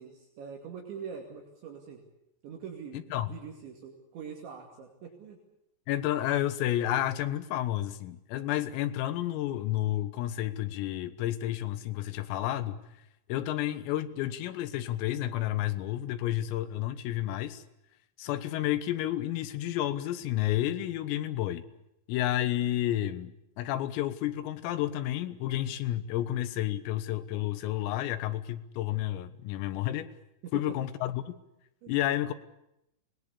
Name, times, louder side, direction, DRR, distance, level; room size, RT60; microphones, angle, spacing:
voice 1, 0.0-2.1 2.4-5.4 30.4-30.7 31.8-32.0, right 7 dB, 65° right, 2 dB, 4.5 m, -43 dB
voice 2, 2.9-3.3 5.9-12.8 13.3-17.6 18.2-21.7 22.1-30.1 30.5-31.4 31.9-32.3, left 13 dB, 85° left, 12 dB, 3.9 m, -31 dB
25.5 x 20.0 x 8.3 m, 0.84 s
omnidirectional pair, 6.0 m